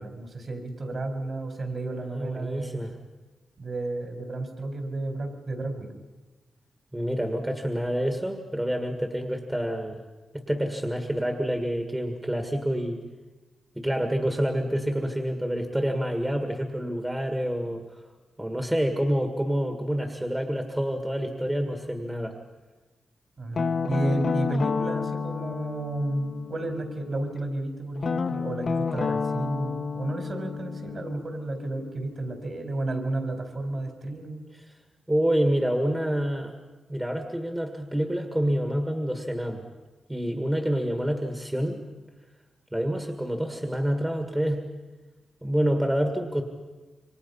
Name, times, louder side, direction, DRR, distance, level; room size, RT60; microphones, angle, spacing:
voice 1, 0.0-2.8 3.6-5.9 23.4-34.4, right 2 dB, 45° right, 5 dB, 4.2 m, -32 dB
voice 2, 2.1-2.9 6.9-10.0 10.3-13.0 13.8-18.0 18.4-22.4 35.1-36.5 36.9-39.6 40.1-41.8 42.7-44.6 45.4-46.4, equal, 10° right, 5 dB, 1.8 m, -27 dB
Guitar, 23.6-27.3 28.0-32.7, left 5 dB, 50° left, 1.1 m, -31 dB
27.5 x 25.0 x 5.6 m, 1.2 s
wide cardioid pair, 130°, 0 cm